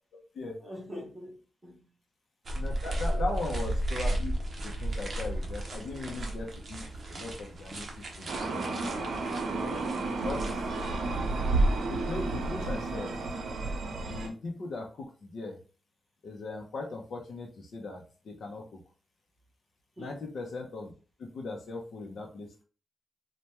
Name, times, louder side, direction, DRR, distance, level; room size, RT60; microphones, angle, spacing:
voice 1, 0.6-1.4 1.6-1.9 3.1-3.6 8.9-9.6 20.0-20.2, equal, 15° right, 0.9 m, -45 dB
sound 1, 2.4-10.9, right 1 dB, 40° right, 0.6 m, -35 dB
voice 2, 2.5-4.3 4.6-6.8 7.1-7.9 8.2-8.7 9.5-9.8 10.2-10.7 11.8-13.2 14.0-15.6 16.2-18.8 20.0-20.9 21.2-22.6, left 3 dB, 60° left, 0.6 m, -39 dB
sound 2, 8.3-14.3, right 2 dB, 90° right, 0.6 m, -31 dB
3.3 x 2.1 x 2.8 m
wide cardioid pair, 180°, 0 cm